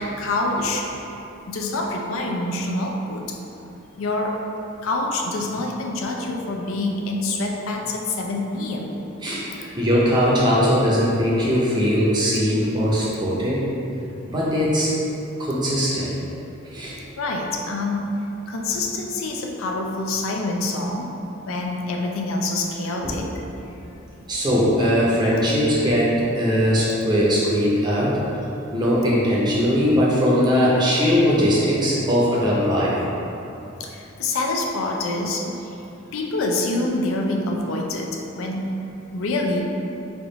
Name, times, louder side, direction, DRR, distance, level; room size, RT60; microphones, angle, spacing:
voice 1, 0.2-0.9 1.5-3.4 4.0-4.4 4.8-9.0 12.5-12.7 17.2-18.1 18.5-21.1 21.5-23.3 23.7-23.8 33.8-35.9 36.1-38.7 39.1-39.7, left 2 dB, 75° left, 1 dB, 0.4 m, -26 dB
voice 2, 9.2-13.6 14.2-14.9 15.4-16.1 16.7-16.9 23.0-23.2 24.3-28.2 28.7-33.0, equal, 20° right, -7 dB, 0.6 m, -20 dB
3.5 x 2.4 x 3.9 m, 2.9 s
head